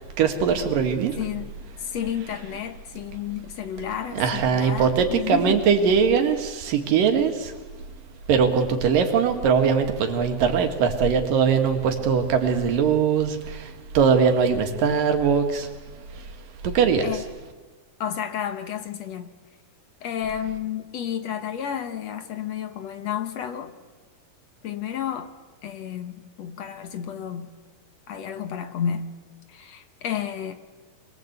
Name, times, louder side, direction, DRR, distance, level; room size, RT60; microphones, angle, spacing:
voice 1, 0.2-1.2 4.1-7.5 8.3-15.7 16.1-16.3 16.6-17.1, right 6 dB, 90° right, 3.6 m, -21 dB
voice 2, 1.2-5.6 17.0-17.2 18.0-19.3 20.0-23.8 24.6-25.3 25.6-27.6 28.1-29.2 29.5-30.5, left 9 dB, 60° left, 2.1 m, -31 dB
26.0 x 21.5 x 8.1 m
omnidirectional pair, 3.8 m